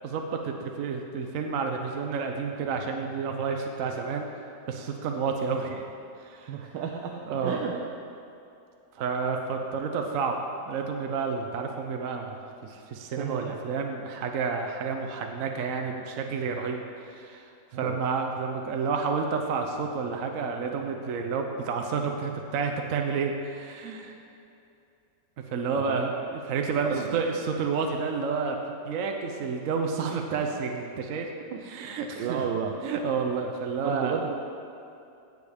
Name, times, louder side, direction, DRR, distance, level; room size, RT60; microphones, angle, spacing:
voice 1, 0.0-4.3 4.7-5.8 6.2-6.6 7.1-7.6 8.9-10.4 10.6-24.1 25.5-31.3 31.6-32.4 32.8-34.2, right 5 dB, 60° right, 3 dB, 0.9 m, -30 dB
voice 2, 6.5-7.1 7.4-7.8 13.2-13.5 17.7-18.0 25.8-26.0 26.8-27.1 31.5-31.6 32.2-32.7 33.8-34.4, right 7 dB, 85° right, 1 dB, 1.3 m, -32 dB
16.5 x 6.7 x 3.5 m, 2.7 s
omnidirectional pair, 1.9 m